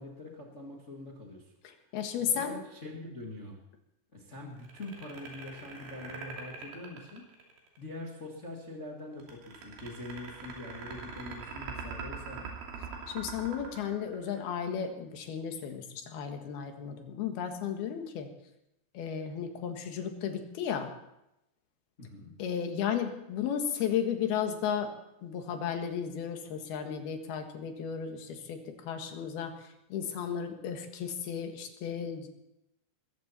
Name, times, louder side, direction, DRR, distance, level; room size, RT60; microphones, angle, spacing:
voice 1, 0.0-1.5 2.2-3.6 4.1-7.3 7.8-12.5 22.0-22.3, left 2 dB, 35° left, -1 dB, 1.2 m, -44 dB
voice 2, 1.9-2.6 13.1-18.3 19.0-20.9 22.4-24.9 25.2-32.3, left 8 dB, 65° left, 5 dB, 3.4 m, -34 dB
sound 1, 4.6-7.8 9.2-14.7, right 5 dB, 80° right, 5.1 m, -43 dB
21.5 x 14.5 x 4.4 m, 0.85 s
omnidirectional pair, 5.0 m